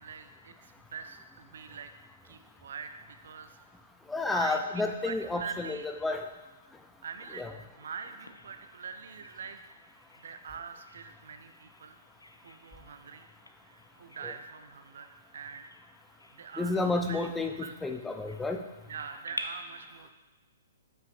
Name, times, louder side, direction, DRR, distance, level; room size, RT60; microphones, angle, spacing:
voice 1, 0.0-1.9 2.2-3.6 4.2-5.9 7.0-9.7 10.1-12.0 12.4-13.3 13.6-15.7 16.3-17.3 17.6-17.8 18.9-20.1, right 6 dB, 60° right, 8 dB, 0.5 m, -44 dB
voice 2, 4.1-6.3 7.4-7.5 14.2-14.3 16.6-17.5 17.8-18.6, left 2 dB, 5° left, 4 dB, 0.5 m, -31 dB
Bird vocalization bird call bird song, 8.3-19.4, left 1 dB, 85° left, 0.5 m, -50 dB
7.7 x 5.6 x 2.6 m, 1.1 s
figure-of-eight pair, 120°, 0 cm